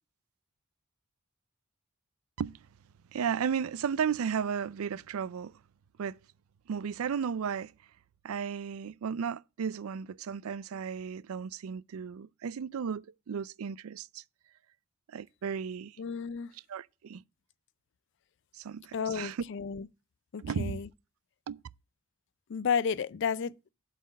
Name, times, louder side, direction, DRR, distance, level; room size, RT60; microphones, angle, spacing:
voice 1, 3.1-5.5 6.0-6.2 6.7-7.7 8.2-14.2 15.1-16.0 16.7-17.2 18.5-19.4 20.4-20.8 21.5-21.6, right 7 dB, 85° right, 0.4 m, -34 dB
voice 2, 16.0-16.5 18.9-19.9 20.3-20.9 22.5-23.7, left 6 dB, 60° left, 0.4 m, -32 dB
7.9 x 4.1 x 6.3 m
head